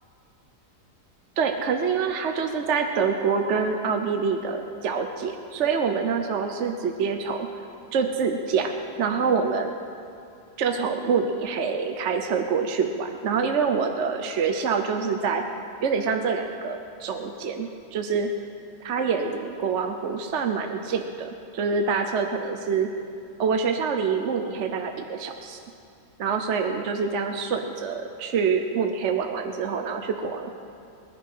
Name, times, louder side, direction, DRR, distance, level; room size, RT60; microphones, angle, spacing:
voice 1, 1.4-7.5 7.9-8.7 9.0-9.7 10.6-15.4 15.8-18.3 18.8-22.9 23.4-25.6 26.2-30.5, right 5 dB, 55° right, 5 dB, 1.0 m, -26 dB
21.5 x 10.0 x 5.6 m, 2.6 s
omnidirectional pair, 1.7 m